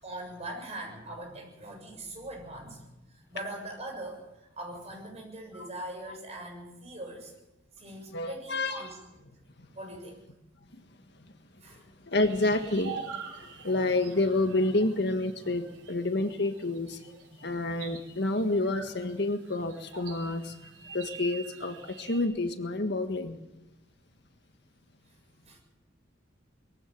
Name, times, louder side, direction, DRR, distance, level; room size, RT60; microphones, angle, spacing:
voice 1, 0.0-2.8 3.3-4.2 4.6-7.3 7.8-9.0 9.8-10.2 11.6-11.8 25.5-25.6, right 1 dB, 35° right, 1 dB, 7.4 m, -41 dB
voice 2, 8.1-8.9 12.1-12.9 13.4-17.0 17.4-20.5 20.9-23.4, left 2 dB, 60° left, 7 dB, 1.7 m, -29 dB
sound 1, 12.2-22.2, right 5 dB, 90° right, 4.7 m, -45 dB
22.0 x 15.0 x 9.2 m, 0.96 s
head